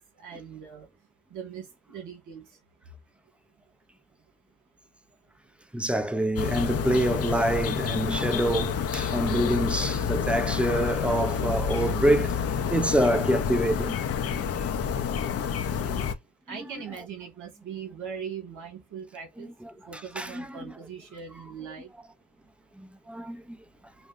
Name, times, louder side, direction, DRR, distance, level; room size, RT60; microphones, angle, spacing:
voice 1, 0.2-0.9 1.3-2.4 15.8-16.1 16.5-19.5 19.9-21.9, right 7 dB, 80° right, 1.8 m, -40 dB
voice 2, 5.7-12.4 12.7-14.0 15.3-15.4 19.4-20.7 22.8-23.6, right 1 dB, 5° right, 0.5 m, -26 dB
sound 1, 6.4-16.1, left 7 dB, 50° left, 0.6 m, -29 dB
5.1 x 2.2 x 2.5 m
cardioid pair, 90°, 30 cm